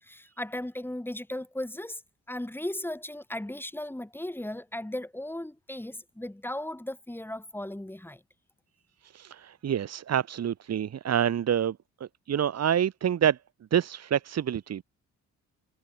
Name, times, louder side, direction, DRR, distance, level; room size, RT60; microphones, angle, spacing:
voice 1, 0.0-2.0 2.3-8.2, left 1 dB, 5° left, 6.2 m, -36 dB
voice 2, 9.1-13.4 13.7-14.8, right 9 dB, 55° right, 2.7 m, -27 dB
cardioid pair, 90°, 30 cm